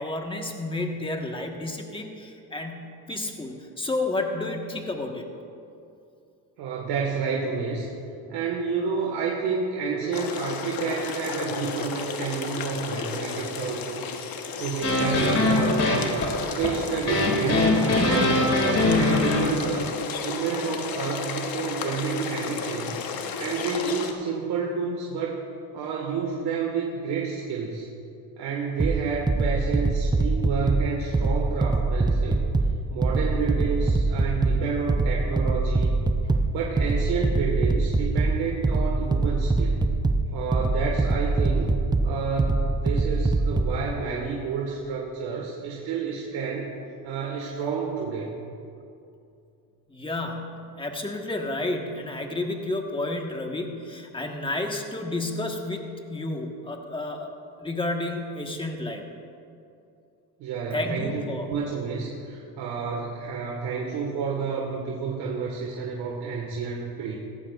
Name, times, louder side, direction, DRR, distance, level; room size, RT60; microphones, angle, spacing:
voice 1, 0.0-5.3 49.9-57.3 57.6-59.0 60.7-61.5, left 2 dB, 15° left, 2 dB, 1.5 m, -31 dB
voice 2, 6.6-7.9 8.3-14.0 14.5-16.2 16.5-23.0 23.4-25.4 25.7-27.9 28.4-32.4 32.9-35.9 36.5-39.9 40.3-41.8 42.0-46.7 47.0-48.4 60.4-61.2 61.5-67.2, right 5 dB, 75° right, -2 dB, 1.7 m, -30 dB
sound 1, 10.1-24.1, left 5 dB, 65° left, 1.2 m, -33 dB
sound 2, 14.8-19.7, left 2 dB, 40° left, 2.5 m, -22 dB
sound 3, 28.8-43.8, right 3 dB, 10° right, 0.6 m, -24 dB
17.5 x 15.0 x 2.5 m, 2.6 s
cardioid pair, 105°, 38 cm